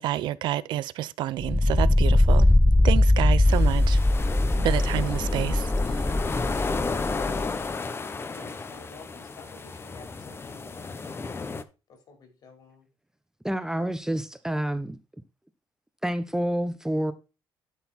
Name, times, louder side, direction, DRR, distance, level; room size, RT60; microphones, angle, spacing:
voice 1, 0.0-2.5 2.8-4.0 4.6-6.1, right 13 dB, 75° right, 0.5 m, -29 dB
sound 1, 1.4-7.5, left 1 dB, 10° left, 0.3 m, -21 dB
sound 2, 3.5-11.6, left 4 dB, 30° left, 0.9 m, -33 dB
voice 2, 8.3-11.3 11.9-12.9, left 4 dB, 60° left, 4.4 m, -50 dB
voice 3, 13.4-15.0 16.0-17.1, right 1 dB, 5° right, 0.8 m, -28 dB
12.0 x 4.1 x 4.3 m
supercardioid pair, 75°, 8 cm